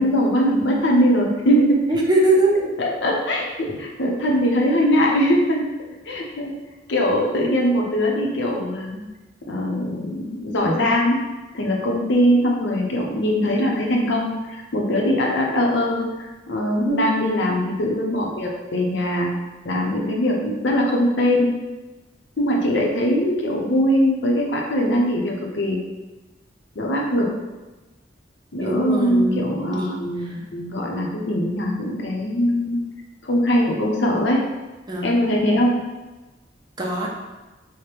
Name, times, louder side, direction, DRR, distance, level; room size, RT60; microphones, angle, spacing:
voice 1, 0.0-1.8 2.8-5.7 6.1-6.5 6.9-9.0 9.5-11.2 11.5-19.3 19.6-21.5 22.4-25.8 26.8-27.3 28.5-32.8 33.2-34.4 35.0-35.8, equal, 80° left, -1 dB, 0.7 m, -21 dB
voice 2, 1.9-2.5 16.9-17.1 28.6-29.4 29.7-29.9 30.2-30.4 34.9-35.1 36.8-37.1, right 1 dB, 25° right, -2 dB, 0.5 m, -21 dB
4.9 x 2.1 x 3.0 m, 1.1 s
head